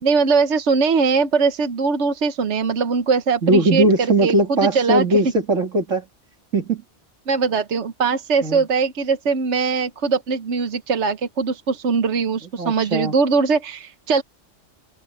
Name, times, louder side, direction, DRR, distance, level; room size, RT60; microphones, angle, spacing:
voice 1, 0.0-3.9 4.2-5.0 7.3-14.2, right 5 dB, 70° right, 1.3 m, -21 dB
voice 2, 3.4-6.1 6.5-6.8 8.4-8.7 12.6-13.1, right 2 dB, 85° right, 3.0 m, -19 dB
omnidirectional pair, 1.3 m